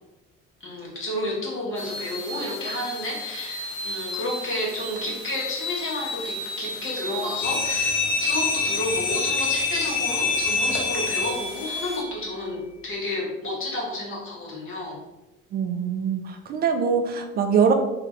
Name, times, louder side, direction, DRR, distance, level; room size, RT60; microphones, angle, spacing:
voice 1, 0.6-15.0, left 1 dB, 35° left, -3 dB, 1.2 m, -31 dB
sound 1, 1.7-12.0, left 2 dB, 70° left, 1.1 m, -34 dB
sound 2, 7.4-11.7, left 4 dB, 50° left, 0.6 m, -25 dB
voice 2, 15.5-17.7, right 6 dB, 25° right, 5 dB, 0.3 m, -23 dB
2.7 x 2.3 x 3.6 m, 1.0 s
figure-of-eight pair, 50°, 37 cm